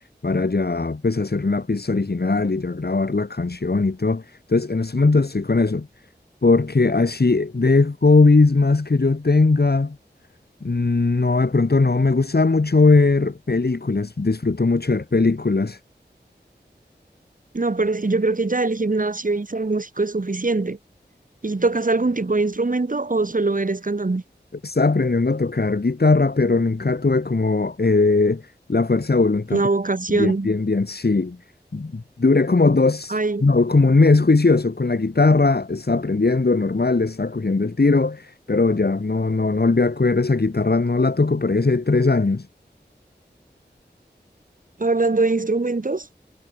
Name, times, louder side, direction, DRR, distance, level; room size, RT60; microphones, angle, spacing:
voice 1, 0.2-5.9 6.4-10.0 10.6-15.8 24.6-29.6 30.1-31.4 31.7-42.5, left 3 dB, 60° left, 2.1 m, -19 dB
voice 2, 17.5-20.8 21.4-24.2 29.5-30.5 33.1-33.6 44.8-46.1, right 3 dB, 50° right, 1.6 m, -22 dB
wide cardioid pair, 60°, 18 cm